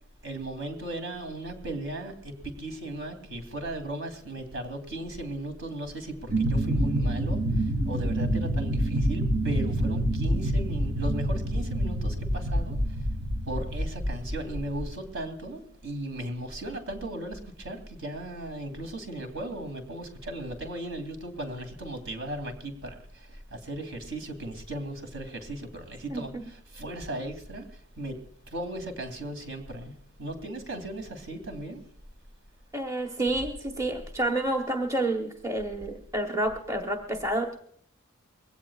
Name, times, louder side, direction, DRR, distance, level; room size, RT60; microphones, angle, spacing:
voice 1, 0.2-7.4 7.8-12.8 13.5-23.0 23.5-27.7 28.0-28.2 28.5-29.9 30.2-31.8, right 1 dB, 60° right, 6 dB, 2.8 m, -36 dB
sound 1, 6.3-14.9, equal, 90° right, 3.0 m, -27 dB
voice 2, 26.1-26.4 32.7-37.6, right 1 dB, 15° right, 3 dB, 1.1 m, -29 dB
22.0 x 17.0 x 2.4 m, 0.64 s
head